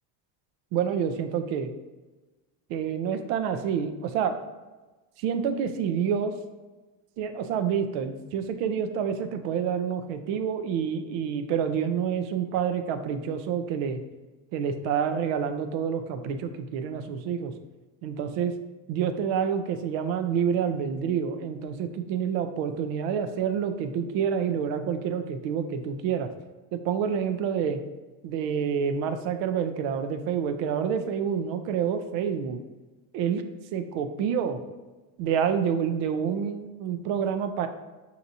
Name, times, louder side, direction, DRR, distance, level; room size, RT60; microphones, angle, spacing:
voice 1, 0.7-1.7 2.7-4.3 5.2-6.3 7.2-14.0 14.5-17.5 18.0-18.5 18.9-26.3 26.7-27.8 28.2-32.6 33.1-33.4 33.7-34.6 35.2-37.7, right 7 dB, 75° right, 8 dB, 0.6 m, -28 dB
5.9 x 2.8 x 2.6 m, 1.2 s
supercardioid pair, 110°, 45 cm